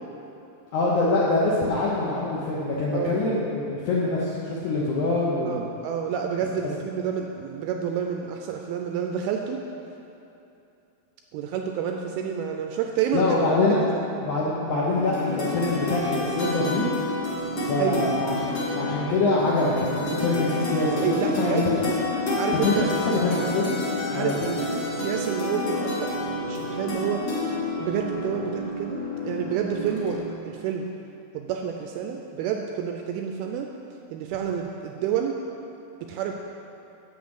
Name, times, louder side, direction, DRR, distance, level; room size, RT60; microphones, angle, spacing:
voice 1, 0.7-5.7 13.1-13.9 14.2-17.0 17.6-21.6 22.6-23.8 24.1-24.6, left 2 dB, 75° left, -6 dB, 1.8 m, -25 dB
voice 2, 5.4-9.6 11.3-13.2 13.9-14.0 17.8-18.1 21.0-21.7 22.3-22.9 24.1-24.4 25.0-26.1 26.4-27.2 27.8-30.9 31.3-33.7 34.1-35.4 36.1-36.3, right 8 dB, 85° right, 3 dB, 2.2 m, -29 dB
sound 1, 14.9-30.2, left 1 dB, 55° left, 1.5 m, -29 dB
7.3 x 6.6 x 7.8 m, 2.8 s
omnidirectional pair, 4.8 m